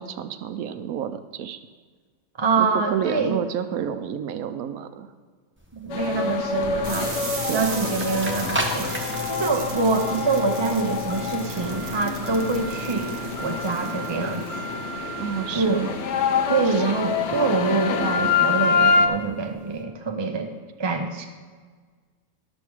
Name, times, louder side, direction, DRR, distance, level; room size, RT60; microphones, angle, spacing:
voice 1, 0.0-1.6 2.6-5.1 7.5-7.6 15.2-16.0, right 8 dB, 85° right, 10 dB, 1.1 m, -29 dB
voice 2, 2.4-3.4 5.7-7.1 7.5-13.1 13.4-14.4 15.5-15.9 16.5-20.5 20.8-21.3, right 3 dB, 30° right, 4 dB, 0.5 m, -25 dB
sound 1, 5.6-19.7, right 2 dB, 10° right, 1.0 m, -37 dB
sound 2, 5.9-19.1, left 5 dB, 60° left, 1.0 m, -26 dB
sound 3, 6.8-14.7, right 2 dB, 60° right, 1.5 m, -36 dB
11.5 x 7.2 x 4.7 m, 1.5 s
omnidirectional pair, 1.5 m